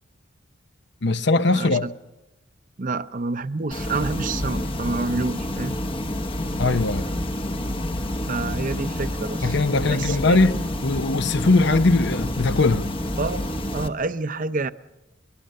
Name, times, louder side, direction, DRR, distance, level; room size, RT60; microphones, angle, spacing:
voice 1, 1.0-1.9 6.6-7.1 9.4-12.9, left 3 dB, 60° left, 0.8 m, -20 dB
voice 2, 1.5-1.9 2.8-5.8 8.3-9.5 9.9-10.4 13.2-13.4 13.7-14.7, right 3 dB, 40° right, 0.7 m, -28 dB
sound 1, 3.7-13.9, left 1 dB, 25° left, 0.9 m, -28 dB
23.0 x 21.5 x 6.6 m
head